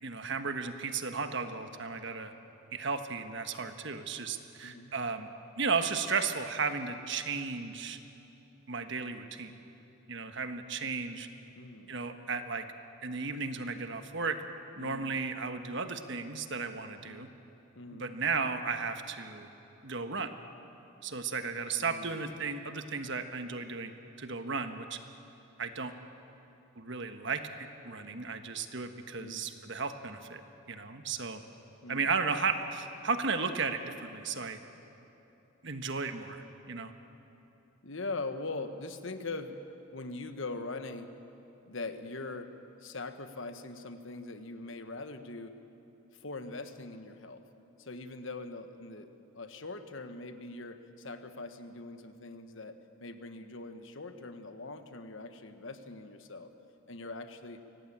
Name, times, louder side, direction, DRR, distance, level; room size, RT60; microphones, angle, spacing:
voice 1, 0.0-2.3 2.7-5.3 5.6-8.0 8.7-9.5 10.1-11.3 11.9-12.7 13.0-14.4 14.8-17.3 18.0-19.5 19.8-20.3 21.0-23.9 24.2-25.0 25.6-25.9 26.8-30.4 30.7-31.4 31.9-34.6 35.6-36.9, right 4 dB, 55° right, 8 dB, 1.3 m, -34 dB
voice 2, 4.6-4.9 11.6-12.0 14.8-15.1 17.0-17.3 17.7-18.1 21.8-22.3 29.2-29.5 31.8-32.2 37.8-39.6 39.9-41.1 41.7-42.5 42.8-45.6 46.2-47.4 47.8-56.5 56.9-57.6, left 3 dB, 60° left, 8 dB, 1.3 m, -42 dB
24.5 x 18.5 x 8.8 m, 3.0 s
head